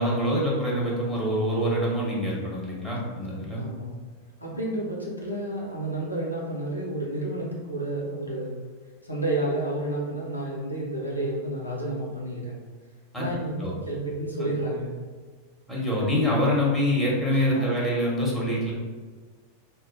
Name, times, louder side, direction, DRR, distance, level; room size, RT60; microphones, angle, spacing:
voice 1, 0.0-3.6 13.1-13.2 13.6-13.7 14.4-14.5 15.7-18.7, equal, ahead, -5 dB, 1.0 m, -25 dB
voice 2, 3.6-3.9 4.4-8.6 9.0-12.6 13.2-15.0 17.3-17.7, right 1 dB, 85° left, -3 dB, 0.5 m, -31 dB
2.5 x 2.0 x 3.9 m, 1.5 s
figure-of-eight pair, 90°, 0 cm